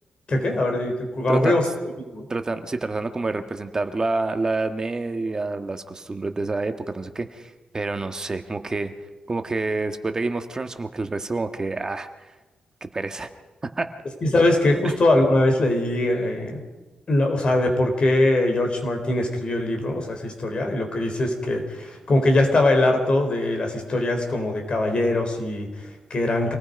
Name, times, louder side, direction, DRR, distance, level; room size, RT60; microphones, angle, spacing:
voice 1, 0.3-1.7 2.1-2.3 14.2-16.6 17.1-26.5, left 1 dB, 40° left, 4 dB, 4.2 m, -22 dB
voice 2, 2.3-8.9 9.3-12.1 12.8-13.3 13.8-13.9 14.8-14.9, right 3 dB, 25° right, 7 dB, 1.4 m, -28 dB
27.0 x 19.0 x 5.3 m, 1.2 s
cardioid pair, 120°, 3 cm